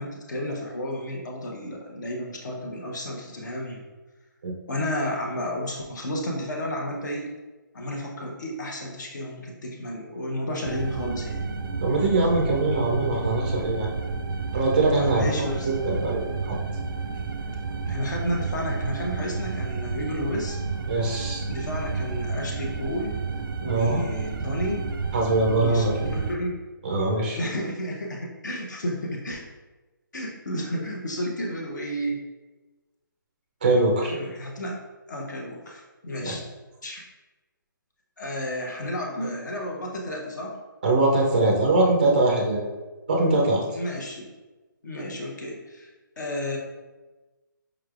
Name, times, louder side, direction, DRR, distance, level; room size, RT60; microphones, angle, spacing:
voice 1, 0.0-3.8 4.7-7.3 7.7-11.5 15.0-15.7 17.9-20.6 21.5-23.2 23.6-24.9 25.6-26.6 27.3-29.4 30.1-32.2 34.1-34.8 35.1-36.4 36.8-37.0 38.2-40.6 43.7-44.3 44.8-45.9 46.2-46.6, equal, 60° left, -1 dB, 0.8 m, -32 dB
sound 1, 10.6-26.4, right 4 dB, 90° right, 0.4 m, -31 dB
voice 2, 11.8-13.9 14.5-15.2 15.8-16.6 20.9-21.4 23.6-24.0 25.1-26.1 26.8-27.4 33.6-34.1 36.2-36.4 40.8-42.6 43.1-43.6, right 2 dB, 25° right, -1 dB, 0.4 m, -22 dB
4.8 x 3.1 x 2.4 m, 1.2 s
hypercardioid pair, 175°, 11 cm